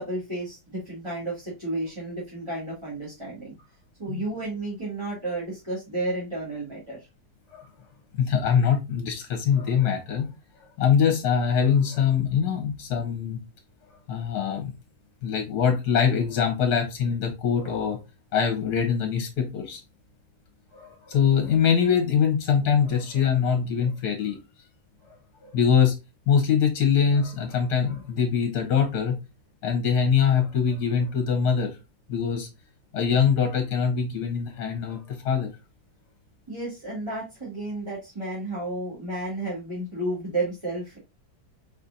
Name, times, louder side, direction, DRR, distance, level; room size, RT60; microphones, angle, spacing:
voice 1, 0.0-3.5 4.0-7.1 36.5-41.0, right 2 dB, 15° right, -8 dB, 1.6 m, -32 dB
voice 2, 8.2-10.3 10.8-13.4 14.1-14.7 15.2-18.0 18.3-19.8 20.7-24.4 25.1-25.2 25.4-25.9 26.3-29.1 29.6-31.7 32.1-32.5 32.9-35.5, left 7 dB, 60° left, 5 dB, 1.4 m, -23 dB
4.7 x 4.2 x 2.6 m, 0.26 s
omnidirectional pair, 2.1 m